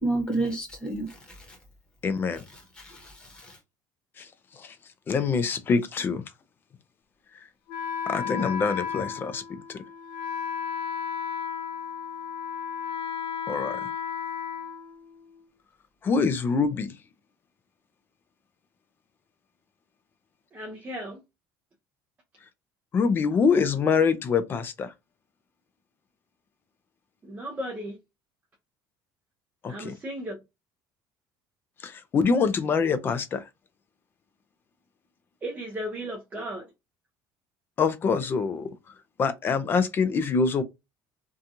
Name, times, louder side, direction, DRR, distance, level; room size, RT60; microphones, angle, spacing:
voice 1, 0.0-1.6 2.8-3.6, right 2 dB, 10° left, 1.0 m, -31 dB
voice 2, 2.0-2.4 4.2-4.3 4.6-4.8 5.1-6.2 8.1-9.4 9.7-9.8 13.5-13.8 16.0-16.9 22.9-24.9 29.6-29.9 31.8-33.4 37.8-38.7 39.2-40.6, left 5 dB, 25° left, 0.4 m, -25 dB
Wind instrument woodwind instrument, 7.7-15.4, left 7 dB, 70° left, 0.7 m, -34 dB
voice 3, 20.5-21.2 27.2-28.0 29.7-30.4 35.4-36.6, equal, 20° right, 0.6 m, -35 dB
2.8 x 2.3 x 2.5 m
cardioid pair, 155°, 8 cm